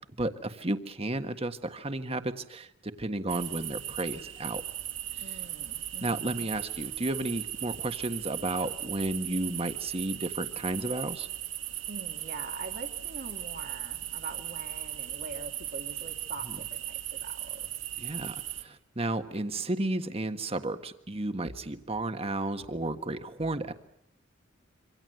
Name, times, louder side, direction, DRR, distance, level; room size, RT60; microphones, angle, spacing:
voice 1, 0.2-4.6 5.3-5.4 6.0-11.3 16.5-16.6 18.0-23.7, right 2 dB, 30° right, 8 dB, 1.5 m, -33 dB
sound 1, 3.3-18.6, right 13 dB, 75° right, 2.2 m, -37 dB
voice 2, 5.2-6.5 11.9-17.7, right 3 dB, 55° right, 4 dB, 2.0 m, -44 dB
26.5 x 25.5 x 7.9 m, 0.74 s
head